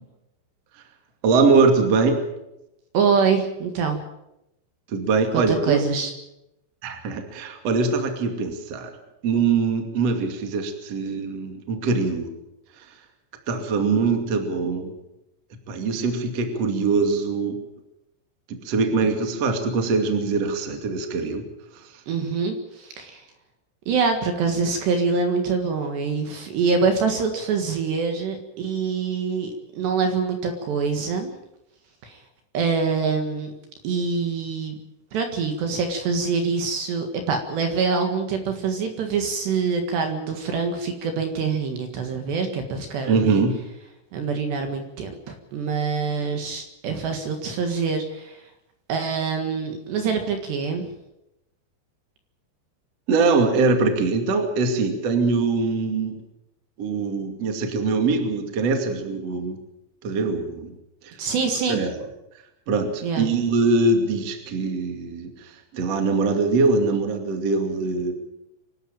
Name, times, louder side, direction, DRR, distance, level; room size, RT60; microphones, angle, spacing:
voice 1, 1.2-2.2 4.9-5.8 6.8-8.9 9.2-12.3 13.5-14.9 15.7-17.6 18.5-21.5 43.1-43.6 53.1-56.2 56.8-59.6 60.0-60.8 61.0-61.1 61.7-62.0 62.7-68.1, right 4 dB, 40° right, 5 dB, 2.6 m, -22 dB
voice 2, 2.9-4.0 5.3-6.1 22.1-23.2 23.9-31.3 32.0-32.2 32.5-33.5 33.8-34.8 35.1-43.4 44.1-48.4 48.9-50.9 61.2-61.8 63.0-63.3, right 5 dB, 65° right, 5 dB, 3.5 m, -25 dB
26.0 x 12.5 x 8.9 m, 0.88 s
omnidirectional pair, 5.9 m